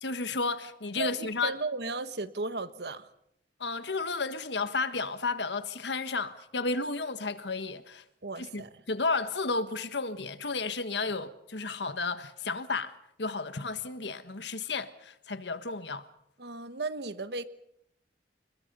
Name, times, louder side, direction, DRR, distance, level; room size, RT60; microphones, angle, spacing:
voice 1, 0.0-1.5 3.6-8.0 8.4-8.6 8.9-16.1, left 3 dB, 80° left, 1.5 m, -32 dB
voice 2, 1.0-3.1 8.2-8.8 11.0-11.1 16.4-17.4, right 3 dB, 65° right, 1.3 m, -35 dB
28.5 x 21.5 x 5.5 m
head